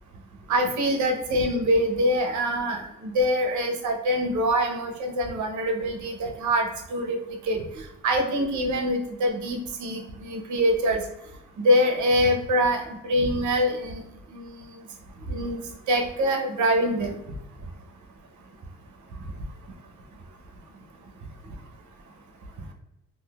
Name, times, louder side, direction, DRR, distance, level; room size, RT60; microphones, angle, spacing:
voice 1, 0.5-11.0 11.6-14.0 14.3-14.8 15.3-15.6 15.9-17.1, equal, 70° right, 3 dB, 0.8 m, -24 dB
3.7 x 2.6 x 2.3 m, 0.86 s
cardioid pair, 90°, 30 cm